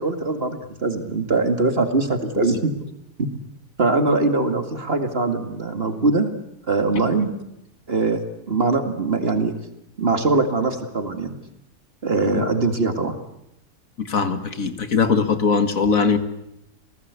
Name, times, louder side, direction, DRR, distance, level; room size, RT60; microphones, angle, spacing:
voice 1, 0.0-2.9 3.2-3.3 3.8-6.3 6.7-7.3 7.9-8.2 8.5-9.5 10.0-11.3 12.0-13.2, right 3 dB, 40° right, 6 dB, 2.3 m, -22 dB
voice 2, 14.0-16.2, left 5 dB, 60° left, 9 dB, 2.0 m, -21 dB
29.0 x 19.0 x 8.3 m, 0.84 s
omnidirectional pair, 1.6 m